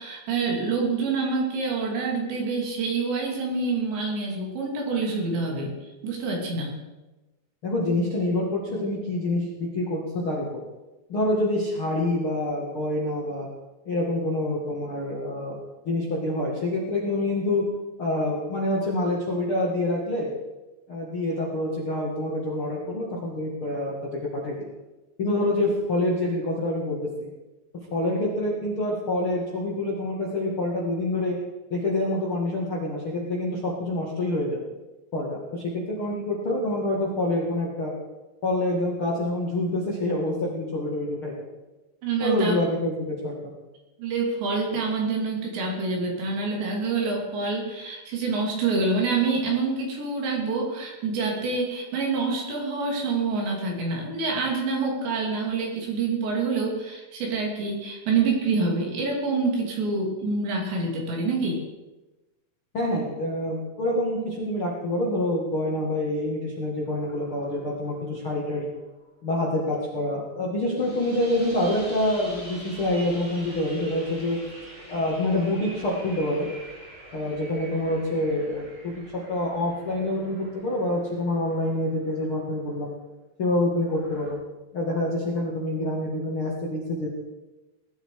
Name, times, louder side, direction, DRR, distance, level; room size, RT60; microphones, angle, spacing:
voice 1, 0.0-5.7 6.0-6.8 42.0-42.5 44.0-61.6, right 4 dB, 65° right, -1 dB, 5.0 m, -26 dB
voice 2, 7.6-10.4 11.1-13.5 13.8-15.6 15.8-17.6 18.0-20.3 20.9-23.9 24.2-24.5 25.2-27.3 27.9-31.4 31.7-34.6 35.1-37.9 38.4-41.3 42.2-43.5 62.7-68.7 69.2-74.4 74.9-76.5 77.1-82.9 83.4-84.4 84.7-87.1, left 1 dB, 45° left, -4 dB, 1.9 m, -26 dB
sound 1, 66.8-69.1 70.7-82.3 83.8-84.3, right 1 dB, 10° right, 5.3 m, -46 dB
19.0 x 12.0 x 4.9 m, 1.1 s
omnidirectional pair, 5.6 m